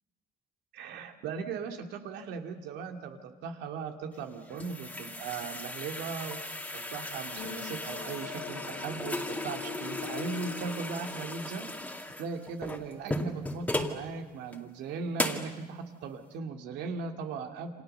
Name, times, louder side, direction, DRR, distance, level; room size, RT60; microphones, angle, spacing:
voice 1, 0.7-6.6 6.9-11.6 12.2-17.8, right 5 dB, 85° right, 4 dB, 2.7 m, -38 dB
sound 1, 4.2-14.0 14.5-14.6 15.2-15.5, left 1 dB, 10° left, 2.2 m, -36 dB
sound 2, 6.9-12.1, left 17 dB, 85° left, 0.8 m, -44 dB
28.5 x 26.5 x 6.9 m, 1.2 s
cardioid pair, 110°, 17 cm